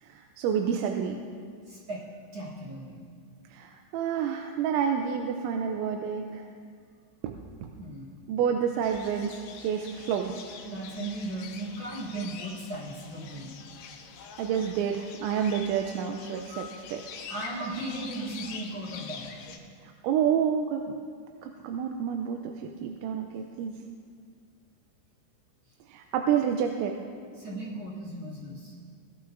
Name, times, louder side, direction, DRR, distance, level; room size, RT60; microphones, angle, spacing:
voice 1, 0.0-1.2 3.5-6.5 7.2-7.7 8.3-10.4 14.4-17.2 19.8-20.8 21.4-23.7 25.9-26.9, right 8 dB, 80° right, 3 dB, 2.8 m, -29 dB
voice 2, 1.7-2.1 2.3-3.1 7.8-8.2 10.7-13.5 17.3-19.4 27.3-28.7, right 2 dB, 35° right, -6 dB, 2.2 m, -37 dB
sound 1, 8.8-19.6, left 6 dB, 80° left, 3.3 m, -45 dB
20.5 x 12.5 x 2.6 m, 2.2 s
omnidirectional pair, 5.5 m